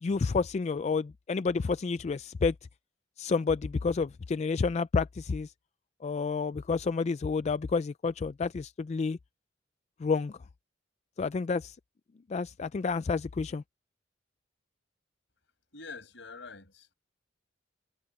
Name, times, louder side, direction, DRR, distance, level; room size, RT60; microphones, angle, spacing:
voice 1, 0.0-2.5 3.2-5.5 6.0-9.2 10.0-10.4 11.2-11.8 12.3-13.6, left 4 dB, 35° left, 0.3 m, -29 dB
voice 2, 15.7-16.9, left 4 dB, 70° left, 6.6 m, -45 dB
head